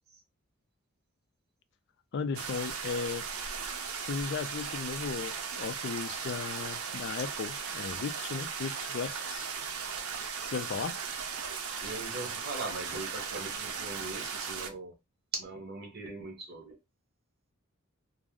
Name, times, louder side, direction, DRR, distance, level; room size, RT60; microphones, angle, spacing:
voice 1, 2.1-3.2 4.0-9.5 10.5-11.0, left 5 dB, 55° left, 0.3 m, -36 dB
sound 1, 2.3-14.7, right 6 dB, 80° right, 0.6 m, -37 dB
voice 2, 11.4-14.9 15.3-16.8, right 2 dB, 50° right, 0.9 m, -41 dB
2.5 x 2.0 x 3.5 m
head